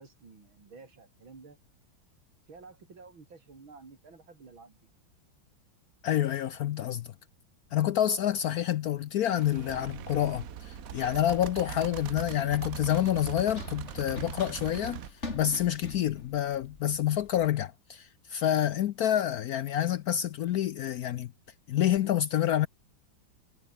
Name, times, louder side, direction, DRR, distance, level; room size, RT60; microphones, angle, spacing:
voice 1, 0.0-1.6 2.5-4.8 12.3-12.5, right 4 dB, 80° right, 4.7 m, -51 dB
voice 2, 6.0-7.1 7.7-15.0 15.3-21.3 21.7-22.7, left 11 dB, 70° left, 0.9 m, -28 dB
sound 1, 9.3-15.1, right 10 dB, 55° right, 1.0 m, -41 dB
Run, 9.7-17.5, left 3 dB, 35° left, 3.9 m, -46 dB
omnidirectional pair, 2.2 m